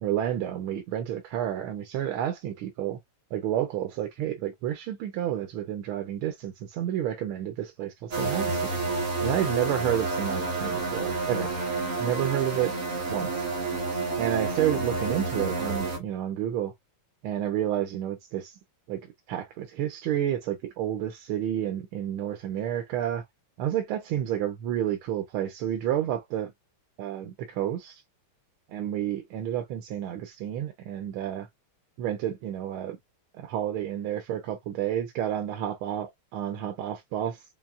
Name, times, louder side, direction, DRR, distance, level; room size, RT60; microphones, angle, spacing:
voice 1, 0.0-3.0 3.3-8.7 9.2-11.5 12.0-12.7 13.1-13.4 14.2-16.7 17.2-18.6 18.9-23.2 23.6-26.5 27.0-28.0 28.7-31.5 32.0-33.0 33.3-37.4, right 11 dB, 80° right, 1.5 m, -30 dB
sound 1, 8.1-16.0, right 3 dB, 40° right, 1.7 m, -29 dB
5.6 x 2.4 x 2.4 m
omnidirectional pair, 2.3 m